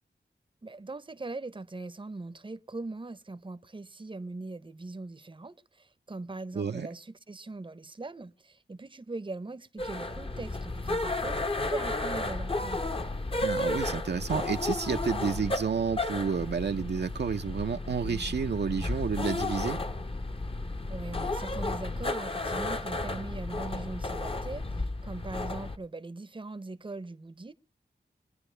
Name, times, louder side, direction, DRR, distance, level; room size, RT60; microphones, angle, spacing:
voice 1, 0.6-12.9 20.9-27.5, right 3 dB, 30° right, 0.7 m, -41 dB
voice 2, 6.5-6.9 13.4-19.8, right 6 dB, 70° right, 0.6 m, -30 dB
sound 1, 9.8-25.8, left 2 dB, 30° left, 0.9 m, -33 dB
22.0 x 9.7 x 3.3 m
cardioid pair, 40°, 18 cm